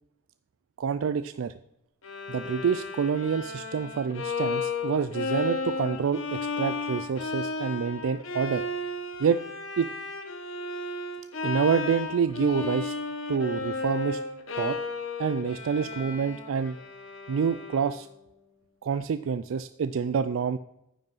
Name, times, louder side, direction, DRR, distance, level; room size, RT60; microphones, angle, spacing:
voice 1, 0.8-1.5 2.3-8.6 9.2-9.4 9.8-9.9 11.4-12.9 13.3-14.2 14.6-14.8 15.2-16.8 17.3-18.1 18.8-20.6, right 6 dB, 75° right, 12 dB, 0.4 m, -27 dB
Bowed string instrument, 2.0-18.1, left 3 dB, 85° left, 1.3 m, -34 dB
9.8 x 5.3 x 5.4 m, 0.85 s
head